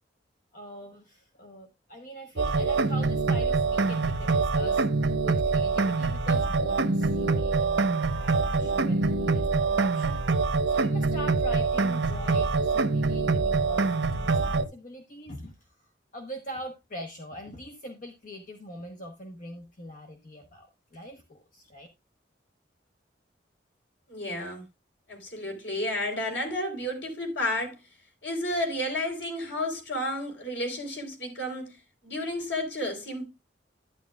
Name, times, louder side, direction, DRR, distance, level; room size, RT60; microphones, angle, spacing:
voice 1, 0.5-4.8 5.2-10.2 10.7-21.9, equal, 45° left, 1.1 m, -43 dB
sound 1, 2.4-14.7, right 3 dB, 80° right, 0.9 m, -25 dB
voice 2, 24.1-24.6 25.1-27.8 28.2-33.3, left 1 dB, 85° left, 3.9 m, -32 dB
11.5 x 10.0 x 2.4 m
head